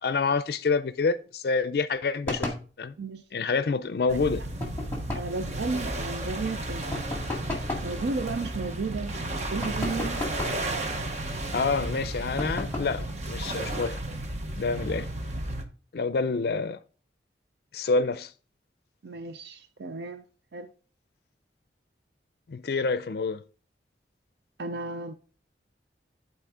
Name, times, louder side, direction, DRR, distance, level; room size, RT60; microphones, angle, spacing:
voice 1, 0.0-2.9 3.3-4.4 11.5-14.0 14.5-15.1 15.9-16.8 17.7-18.3 22.5-23.4, left 4 dB, 60° left, 0.4 m, -27 dB
sound 1, 2.2-2.7 4.6-5.4 6.9-7.9 9.6-10.7 12.4-13.0, left 2 dB, 10° left, 1.8 m, -33 dB
sound 2, 4.1-15.6, right 1 dB, 40° right, 0.9 m, -33 dB
voice 2, 5.1-7.0 7.8-9.2 9.5-10.4 19.0-20.2 20.5-20.7 24.6-25.1, right 3 dB, 70° right, 0.5 m, -33 dB
10.5 x 4.3 x 3.6 m
head